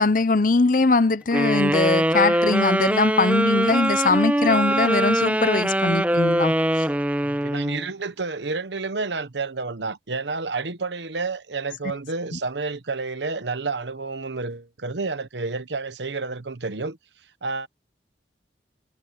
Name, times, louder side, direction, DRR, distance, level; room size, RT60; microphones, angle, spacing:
voice 1, 0.0-6.5 12.3-12.4, left 3 dB, 50° left, 0.8 m, -21 dB
sound 1, 1.3-7.9, right 1 dB, 10° right, 1.0 m, -22 dB
voice 2, 7.2-17.0 17.4-17.7, right 3 dB, 85° right, 1.1 m, -30 dB
head